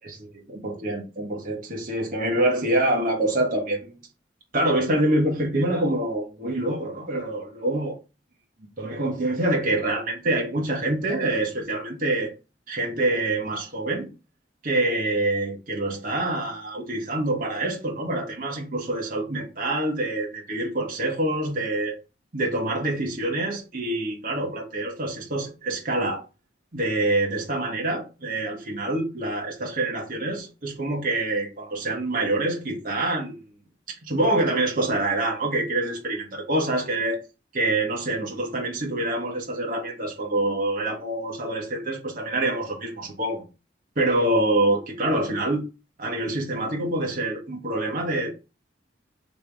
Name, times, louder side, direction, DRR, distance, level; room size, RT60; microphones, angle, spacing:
voice 1, 0.0-4.0 4.5-8.0 8.6-12.3 12.7-14.1 14.6-22.0 22.3-26.2 26.7-33.5 34.1-37.2 37.5-43.5 43.9-45.6 46.0-48.3, right 1 dB, 45° right, 1.2 m, -26 dB
3.3 x 2.9 x 3.4 m
head